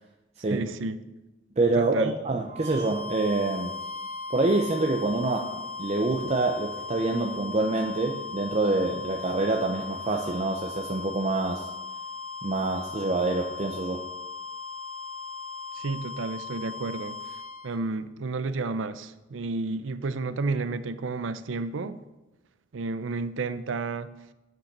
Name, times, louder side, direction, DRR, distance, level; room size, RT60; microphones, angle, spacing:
voice 1, 0.5-1.0 1.8-2.1 15.7-17.2 17.6-22.0 22.7-24.1, right 3 dB, 85° right, 14 dB, 0.5 m, -31 dB
voice 2, 1.6-3.7 4.3-11.7 12.4-14.0, right 2 dB, 35° right, 2 dB, 0.6 m, -26 dB
sound 1, 2.4-17.7, left 4 dB, 60° right, 1.1 m, -38 dB
8.8 x 5.3 x 6.7 m, 1.1 s
head